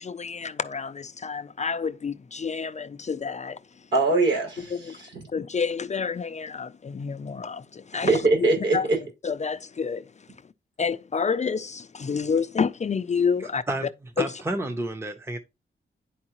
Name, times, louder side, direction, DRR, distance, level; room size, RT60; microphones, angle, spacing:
voice 1, 0.0-3.6 4.7-5.0 5.3-8.1 8.7-8.9 9.2-10.0 10.8-13.6 14.2-14.3, left 5 dB, 35° left, 0.4 m, -28 dB
voice 2, 3.9-5.3 7.9-9.0, right 3 dB, 70° right, 5.3 m, -23 dB
voice 3, 13.4-15.4, right 1 dB, 15° right, 0.7 m, -31 dB
10.5 x 4.6 x 2.9 m
wide cardioid pair, 170°, 20 cm